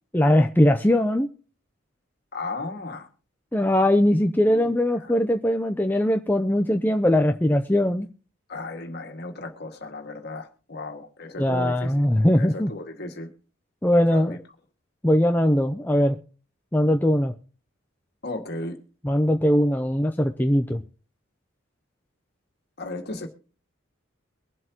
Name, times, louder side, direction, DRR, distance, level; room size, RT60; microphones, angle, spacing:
voice 1, 0.1-1.3 3.5-8.1 11.4-12.7 13.8-14.4 15.0-16.2 16.7-17.3 19.0-20.8, left 1 dB, 10° left, 4 dB, 0.6 m, -20 dB
voice 2, 2.3-3.1 4.4-4.7 5.0-5.1 8.5-11.9 12.4-13.3 14.1-14.4 18.2-18.8 22.8-23.3, left 2 dB, 50° left, 4 dB, 2.0 m, -35 dB
23.0 x 7.8 x 3.0 m, 0.37 s
head